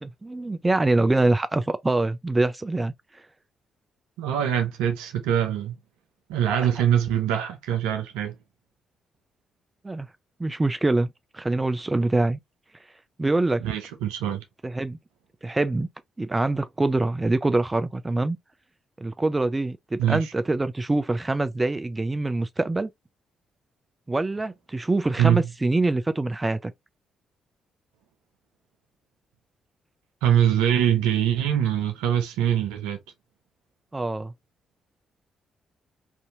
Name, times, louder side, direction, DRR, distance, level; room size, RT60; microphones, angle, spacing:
voice 1, 0.0-3.2 6.8-6.9 9.8-10.1 10.4-12.4 13.2-13.6 14.6-15.0 15.4-15.9 16.2-18.4 19.0-22.9 24.1-26.7 33.9-34.3, right 2 dB, 20° right, 0.4 m, -24 dB
voice 2, 4.2-5.7 6.3-8.4 13.6-14.4 20.0-20.2 25.2-25.5 30.2-33.0, right 10 dB, 75° right, 0.5 m, -23 dB
3.3 x 2.7 x 2.5 m
figure-of-eight pair, 40°, 0 cm